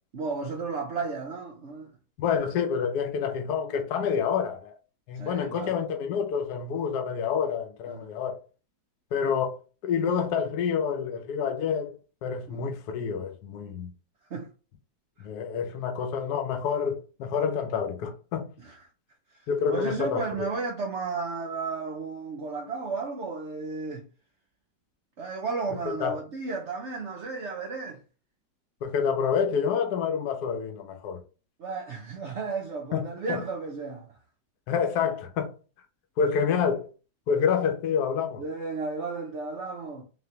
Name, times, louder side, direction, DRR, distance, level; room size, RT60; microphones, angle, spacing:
voice 1, 0.1-1.9 5.1-5.8 7.9-8.1 12.5-12.7 14.3-14.5 18.6-18.8 19.3-24.1 25.2-28.0 31.6-34.1 38.4-40.0, right 4 dB, 70° right, 0.6 m, -33 dB
voice 2, 2.2-4.7 5.1-8.4 9.1-9.6 9.8-13.9 15.2-18.5 19.5-20.2 26.0-26.2 28.8-31.2 32.9-33.4 34.7-35.6 36.2-36.9 37.3-38.4, left 7 dB, 65° left, 1.2 m, -28 dB
4.0 x 3.2 x 2.8 m
omnidirectional pair, 2.0 m